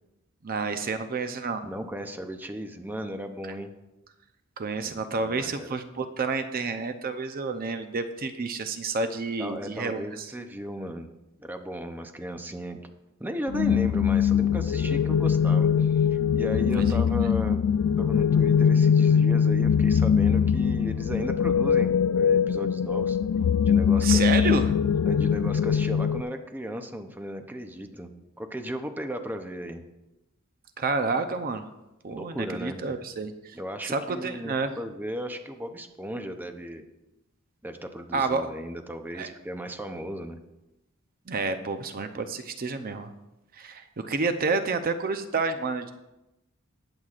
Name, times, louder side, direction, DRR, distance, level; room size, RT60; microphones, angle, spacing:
voice 1, 0.4-1.6 4.6-10.0 16.8-17.0 24.0-24.7 30.8-31.7 32.0-33.6 33.8-34.7 38.1-38.5 39.2-39.3 41.3-43.1 43.6-45.9, right 4 dB, 45° right, 8 dB, 0.6 m, -29 dB
voice 2, 1.6-3.7 4.8-5.8 9.4-11.1 11.4-12.9 13.2-17.6 18.0-23.2 23.7-24.6 25.1-28.1 28.4-29.8 32.1-32.9 33.5-36.9 37.6-40.4, equal, 10° right, 6 dB, 0.6 m, -36 dB
sound 1, 13.5-26.2, left 7 dB, 85° left, 0.3 m, -22 dB
19.5 x 7.9 x 2.5 m, 0.96 s
head